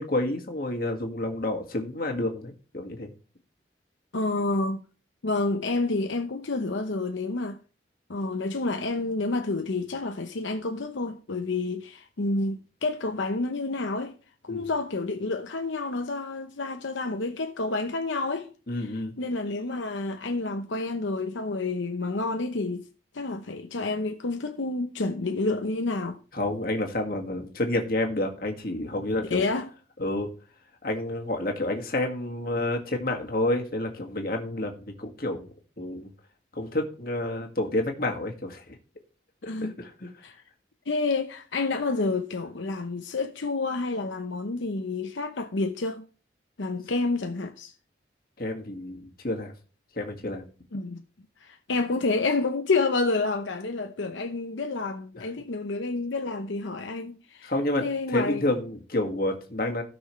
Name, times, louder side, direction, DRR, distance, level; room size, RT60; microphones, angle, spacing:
voice 1, 0.0-3.1 14.5-14.6 18.7-19.1 26.3-29.4 30.0-30.3 30.8-36.1 36.5-38.8 39.4-40.1 48.4-49.5 50.0-50.5 55.2-55.3 57.4-59.8, left 1 dB, 50° left, 1.8 m, -29 dB
voice 2, 4.1-4.8 5.2-7.6 8.1-14.1 14.4-18.5 18.8-22.9 23.1-26.2 29.3-29.7 39.5-39.8 40.2-40.4 40.9-46.1 46.6-47.7 50.7-51.0 51.4-57.5 57.8-58.4, left 3 dB, 85° left, 0.8 m, -29 dB
16.5 x 6.1 x 3.2 m
head